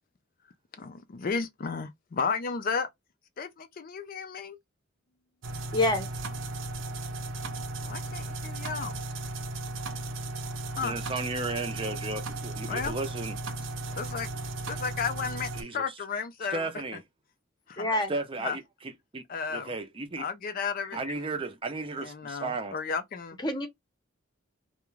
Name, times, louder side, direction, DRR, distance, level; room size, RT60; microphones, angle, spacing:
voice 1, 0.8-2.9 3.4-4.6 7.8-9.0 10.7-10.9 12.7-12.9 14.0-14.3 14.7-16.7 17.7-17.8 18.4-18.6 19.3-19.7 20.2-21.0 22.0-23.4, left 5 dB, 45° left, 0.4 m, -33 dB
sound 1, 5.4-15.6, right 2 dB, 70° right, 0.6 m, -36 dB
voice 2, 5.7-6.1 17.8-18.1 21.1-21.2 23.4-23.7, left 1 dB, 20° left, 0.7 m, -26 dB
voice 3, 10.8-13.4 15.6-15.8 16.5-17.0 18.1-19.2 19.5-20.2 20.9-22.8, right 3 dB, 25° right, 0.5 m, -34 dB
2.4 x 2.2 x 3.0 m
head